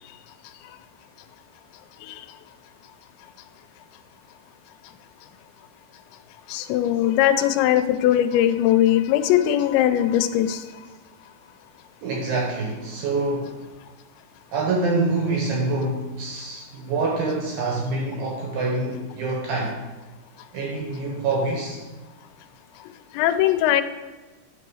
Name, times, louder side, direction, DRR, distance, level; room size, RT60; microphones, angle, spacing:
voice 1, 6.5-10.6 23.1-23.8, left 12 dB, 85° left, 10 dB, 2.8 m, -20 dB
voice 2, 12.0-13.6 14.5-19.8 20.5-21.8, right 3 dB, 70° right, -1 dB, 2.3 m, -26 dB
9.7 x 3.8 x 6.2 m, 1.2 s
omnidirectional pair, 5.1 m